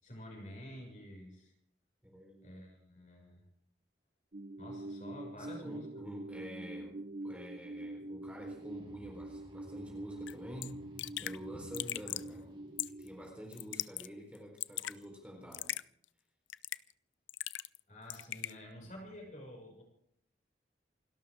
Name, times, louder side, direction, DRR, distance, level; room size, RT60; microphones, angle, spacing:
voice 1, 0.0-1.5 2.4-3.4 4.6-6.0 17.9-19.8, equal, 40° left, 0 dB, 6.3 m, -49 dB
voice 2, 2.0-2.5 5.4-7.0 7.2-10.8 11.2-12.5 13.0-15.7, equal, 5° right, 0 dB, 4.1 m, -48 dB
sound 1, 4.3-13.1, right 2 dB, 45° right, 0.8 m, -45 dB
sound 2, 8.2-13.2, equal, 25° right, 2.5 m, -57 dB
Raindrop / Drip, 10.3-10.4 10.6-10.7 11.0-11.4 11.7-12.3 12.8-13.1 13.5-14.1 14.4-15.0 15.5-15.8 16.5-16.9 17.3-17.8 18.1-18.5, left 14 dB, 90° left, 0.5 m, -38 dB
29.0 x 12.5 x 3.7 m, 0.67 s
head